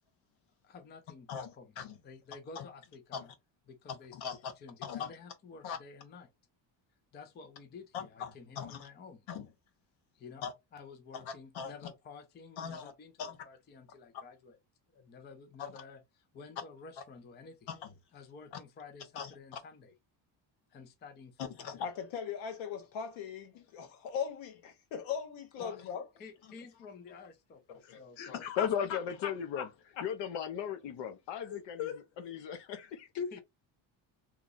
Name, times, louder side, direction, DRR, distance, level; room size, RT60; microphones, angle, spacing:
voice 1, 0.6-1.7 2.0-3.3 3.7-6.3 7.1-9.3 10.1-10.4 10.7-14.6 14.9-17.7 18.1-19.9 20.7-21.7 25.6-25.8 26.2-28.2 33.3-33.4, left 4 dB, 25° left, 0.4 m, -51 dB
voice 2, 1.3-2.0 2.6-2.7 3.1-3.2 3.9-4.5 4.8-5.1 5.6-5.8 7.9-8.3 8.6-8.9 9.3-9.5 10.4-10.5 11.1-11.7 12.6-12.9 13.2-13.4 15.6-15.8 17.7-17.9 18.5-18.6 19.1-19.6 21.4-26.0 27.8-29.7 30.0-30.1 31.4-32.0 32.8-32.9 33.2-33.3, left 7 dB, 90° left, 1.1 m, -40 dB
voice 3, 28.4-29.7 30.0-31.9 32.2-33.1, left 8 dB, 70° left, 0.8 m, -36 dB
2.9 x 2.4 x 3.8 m
cardioid pair, 180°, 45 cm